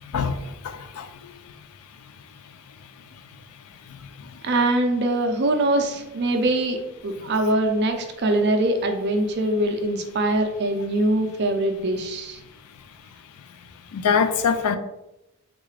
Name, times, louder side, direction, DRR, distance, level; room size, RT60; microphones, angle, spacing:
voice 1, 0.6-1.0 13.9-14.8, left 6 dB, 85° left, 0.4 m, -22 dB
voice 2, 4.4-12.4, right 1 dB, 50° right, 0.5 m, -23 dB
3.7 x 2.4 x 3.2 m
head